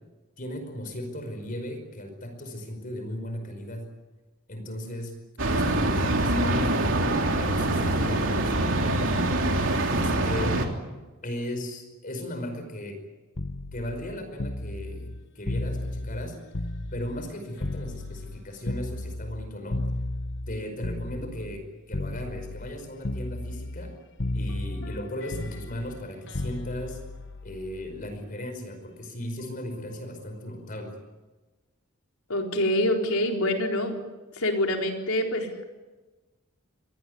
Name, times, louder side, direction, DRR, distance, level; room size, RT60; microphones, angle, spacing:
voice 1, 0.4-3.9 4.5-5.2 5.4-9.2 9.9-10.6 11.2-13.0 13.7-16.4 16.9-19.8 20.5-24.0 24.3-27.0 27.4-31.0, left 1 dB, 40° left, 6 dB, 5.2 m, -36 dB
sound 1, 5.4-10.7, right 1 dB, 60° right, 3.3 m, -24 dB
sound 2, 13.4-17.3 17.6-21.6 21.9-22.8 23.0-23.9 24.2-28.2 29.4-29.6, left 1 dB, 60° left, 1.4 m, -34 dB
voice 2, 32.3-33.9 34.3-35.6, left 1 dB, 85° left, 2 dB, 4.4 m, -26 dB
25.5 x 19.5 x 9.6 m, 1.2 s
head